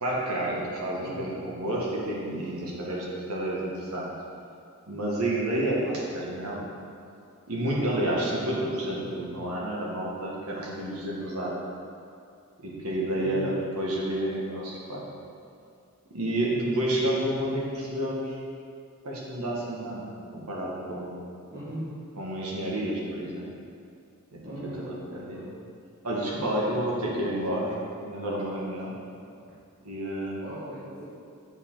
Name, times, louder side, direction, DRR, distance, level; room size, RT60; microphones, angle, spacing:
voice 1, 0.0-4.1 4.9-6.7 7.5-11.6 12.6-15.0 16.1-18.4 19.0-20.0 20.3-21.2 22.2-23.5 24.3-24.4 24.8-25.4 26.0-27.7 28.0-28.9 29.8-30.4, right 1 dB, 80° right, -4 dB, 1.8 m, -30 dB
voice 2, 1.0-1.3 8.9-9.2 13.2-13.5 16.6-17.1 21.5-22.0 24.4-24.9 25.3-25.5 29.3-29.4 30.4-31.0, right 1 dB, 45° right, -10 dB, 1.7 m, -39 dB
8.0 x 6.9 x 3.9 m, 2.4 s
head